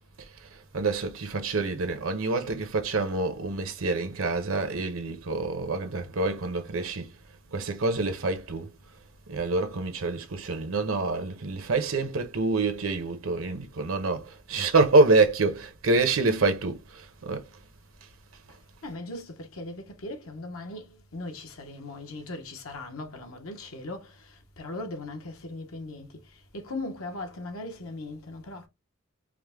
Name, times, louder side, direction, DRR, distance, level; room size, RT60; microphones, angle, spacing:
voice 1, 0.7-7.1 7.5-8.7 9.3-17.4, right 3 dB, 75° right, 0.8 m, -26 dB
voice 2, 18.8-26.2 26.5-28.7, left 2 dB, 80° left, 0.9 m, -39 dB
4.8 x 2.1 x 3.5 m
head